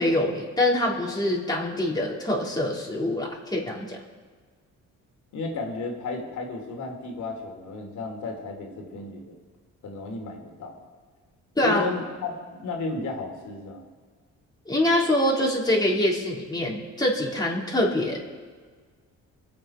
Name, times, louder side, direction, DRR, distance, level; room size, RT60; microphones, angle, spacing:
voice 1, 0.0-4.0 11.6-11.8 14.7-18.2, left 1 dB, 15° left, -4 dB, 3.8 m, -24 dB
voice 2, 5.3-9.4 9.8-10.7 11.6-13.8, left 3 dB, 70° left, 2 dB, 3.0 m, -33 dB
25.0 x 8.4 x 4.4 m, 1.5 s
cardioid pair, 90°, 30 cm